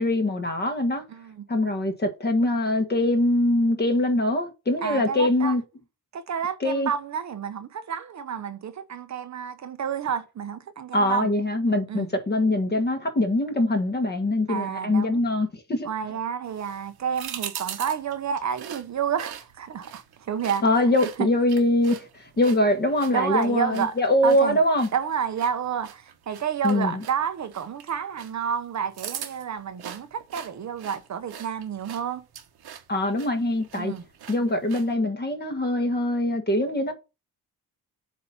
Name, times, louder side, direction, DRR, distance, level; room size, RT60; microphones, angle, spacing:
voice 1, 0.0-1.0 1.5-5.6 6.6-6.9 10.9-15.9 20.6-24.9 26.6-27.0 32.9-33.9 34.3-36.9, left 1 dB, 25° left, 1.4 m, -23 dB
voice 2, 1.1-1.5 4.8-5.6 6.1-11.3 11.9-12.1 14.5-15.2 15.8-20.6 21.2-21.3 23.1-23.9 24.2-24.6 24.9-32.2 33.7-34.0, right 7 dB, 50° right, 0.7 m, -30 dB
sound 1, 16.4-35.0, right 9 dB, 85° right, 1.1 m, -43 dB
7.9 x 2.8 x 5.5 m
wide cardioid pair, 140°, 37 cm